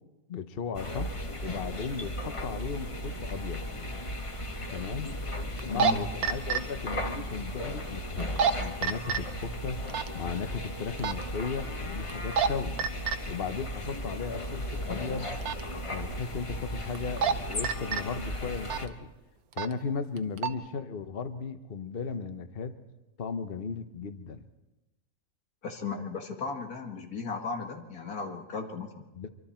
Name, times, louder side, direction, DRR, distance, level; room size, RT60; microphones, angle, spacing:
voice 1, 0.3-1.1 1.4-3.6 4.7-5.1 5.6-8.3 8.6-9.8 10.1-12.8 13.3-15.3 15.9-19.1 19.5-22.8 23.2-24.4 29.1-29.3, left 5 dB, 45° left, 9 dB, 1.1 m, -36 dB
sound 1, 0.7-18.9, left 1 dB, 25° left, 1.2 m, -36 dB
sound 2, 3.5-3.6 5.6-5.9 6.2-6.6 8.2-8.5 8.8-9.2 9.9-10.1 11.0-11.2 12.1-12.5 12.8-13.2 15.4-15.6 16.9-17.3 17.6-18.0 18.7-18.9 19.5-19.7 20.2-20.5, right 6 dB, 80° right, 1.4 m, -26 dB
voice 2, 25.6-29.0, left 4 dB, 85° left, 4 dB, 2.4 m, -35 dB
25.5 x 24.0 x 4.4 m, 1.0 s
omnidirectional pair, 1.5 m